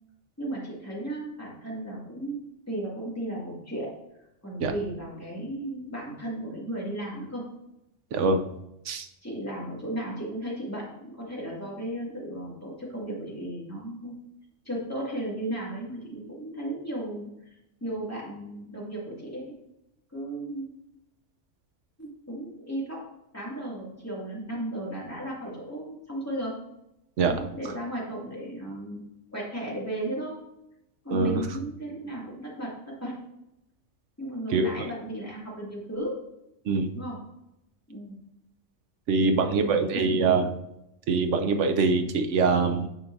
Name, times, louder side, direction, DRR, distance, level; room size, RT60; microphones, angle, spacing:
voice 1, 0.4-2.4 2.7-3.9 4.4-7.4 9.2-14.1 14.6-17.3 17.8-19.4 20.1-20.7 22.0-23.0 23.3-26.5 27.3-29.0 29.3-30.4 31.0-33.2 34.2-36.1 36.9-37.2 37.9-38.1 39.2-40.4, right 1 dB, 10° left, -6 dB, 2.3 m, -35 dB
voice 2, 8.1-8.5 8.8-9.1 27.2-27.4 31.1-31.5 34.5-34.9 36.6-36.9 39.1-40.5 41.1-42.9, right 4 dB, 75° right, 6 dB, 1.0 m, -24 dB
9.1 x 5.9 x 2.6 m, 0.85 s
omnidirectional pair, 1.3 m